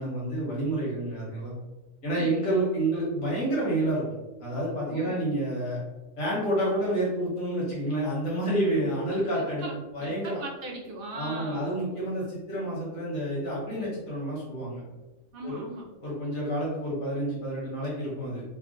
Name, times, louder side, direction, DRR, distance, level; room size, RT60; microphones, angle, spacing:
voice 1, 0.0-1.5 2.0-4.0 4.4-5.8 6.2-9.6 9.9-10.4 11.2-14.8 15.4-15.6 16.0-18.4, right 1 dB, 85° left, -7 dB, 1.7 m, -29 dB
voice 2, 2.1-2.5 4.9-5.3 9.1-11.8 15.3-15.9, right 1 dB, 55° right, -1 dB, 0.7 m, -39 dB
3.6 x 2.2 x 2.5 m, 1.1 s
omnidirectional pair, 1.3 m